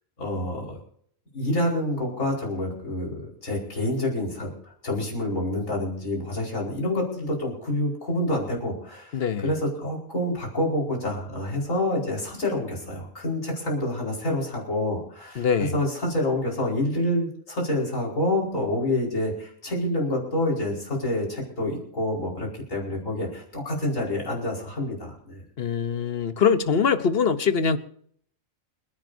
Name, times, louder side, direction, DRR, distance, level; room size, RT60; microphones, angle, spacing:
voice 1, 0.2-0.7 1.3-25.4, left 1 dB, 70° left, 5.4 m, -27 dB
voice 2, 9.1-9.5 15.4-15.8 25.6-27.8, left 6 dB, 50° left, 1.0 m, -23 dB
29.0 x 10.5 x 2.7 m
omnidirectional pair, 1.4 m